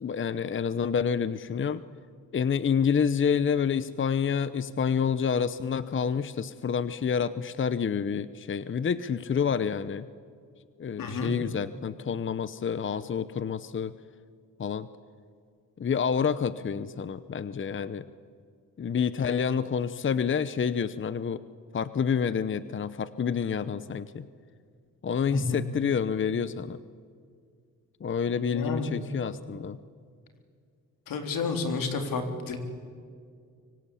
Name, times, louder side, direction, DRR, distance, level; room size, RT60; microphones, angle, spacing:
voice 1, 0.0-1.8 2.3-10.1 10.8-14.0 14.6-14.9 15.8-18.0 18.8-21.4 21.7-24.3 25.0-26.8 28.0-29.8, left 7 dB, 35° left, 14 dB, 0.9 m, -28 dB
voice 2, 11.0-11.3 25.3-25.6 28.4-28.9 31.1-32.6, left 4 dB, 80° left, 6 dB, 3.7 m, -31 dB
25.0 x 24.5 x 8.5 m, 2.2 s
cardioid pair, 95°, 33 cm